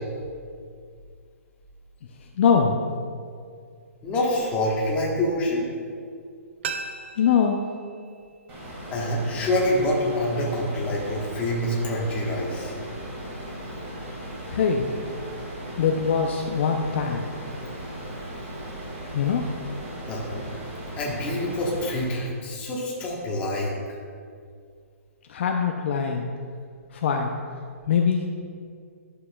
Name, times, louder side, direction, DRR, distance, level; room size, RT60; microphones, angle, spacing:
voice 1, 2.4-2.8 7.2-7.7 14.5-14.9 15.8-17.2 19.1-19.5 25.3-26.3 26.9-27.3 27.9-28.2, left 6 dB, 50° left, 2 dB, 0.5 m, -22 dB
voice 2, 4.0-5.7 8.9-12.7 20.1-20.5 21.0-23.8, left 1 dB, 15° left, -4 dB, 1.2 m, -26 dB
sound 1, 6.6-9.4 9.7-9.8, right 5 dB, 50° right, 0.5 m, -38 dB
sound 2, 8.5-22.0, right 1 dB, 25° right, 1.9 m, -37 dB
11.0 x 6.6 x 2.3 m, 2.2 s
hypercardioid pair, 155°, 8 cm